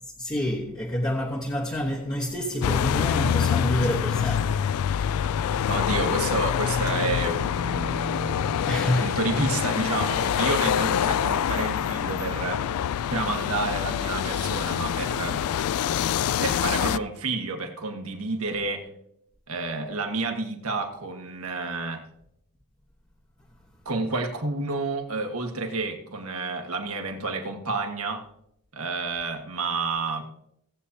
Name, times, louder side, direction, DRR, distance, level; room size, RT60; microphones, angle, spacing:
voice 1, 0.2-5.2 8.6-9.2, equal, 20° left, 1.0 m, -28 dB
sound 1, 2.6-17.0, left 9 dB, 80° left, 0.3 m, -26 dB
voice 2, 5.7-12.7 13.1-15.4 16.4-18.9 19.5-22.0 23.8-28.3 28.7-30.2, right 3 dB, 75° right, 1.6 m, -30 dB
17.5 x 8.2 x 2.8 m
head